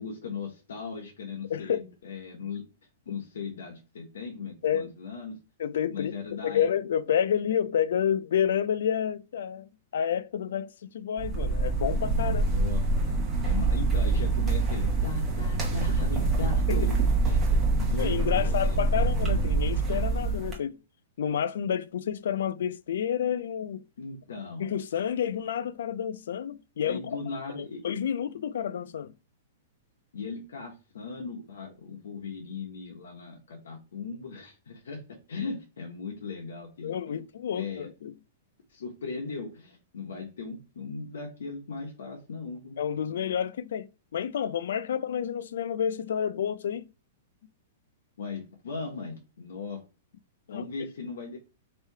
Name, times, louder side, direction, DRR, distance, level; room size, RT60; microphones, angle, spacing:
voice 1, 0.0-2.6 3.1-5.4 5.9-6.7 12.3-12.8 13.4-17.0 17.3-17.5 17.7-19.0 24.0-24.7 26.8-27.8 30.1-35.0 35.3-37.2 37.5-37.9 38.7-42.8 48.2-49.8 50.5-51.4, left 4 dB, 90° left, 1.1 m, -38 dB
voice 2, 1.5-1.8 4.6-4.9 5.6-6.1 6.4-12.5 16.7-16.8 18.0-20.8 21.2-23.8 24.6-27.2 27.5-29.1 36.8-38.1 42.8-46.9 50.5-50.6, left 8 dB, 75° left, 0.4 m, -29 dB
sound 1, 11.2-20.5, right 3 dB, 15° right, 1.1 m, -25 dB
3.3 x 2.8 x 4.6 m
hypercardioid pair, 165°, 0 cm